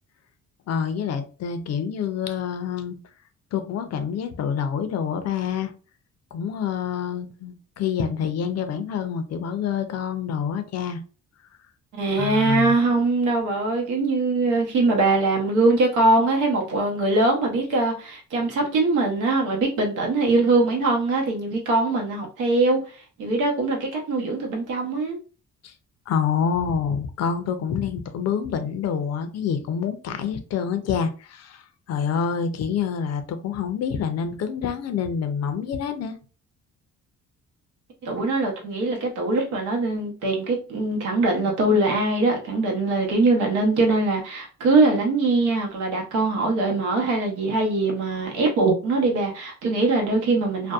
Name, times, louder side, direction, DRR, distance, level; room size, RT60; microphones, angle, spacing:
voice 1, 0.7-3.0 3.5-5.7 6.3-11.0 12.2-12.7 25.6-25.7 26.1-36.2, left 7 dB, 60° left, 0.5 m, -27 dB
voice 2, 11.9-22.8 23.2-25.2 38.0-50.7, right 2 dB, 90° right, 0.9 m, -22 dB
2.6 x 2.1 x 2.3 m
cardioid pair, 90°, 30 cm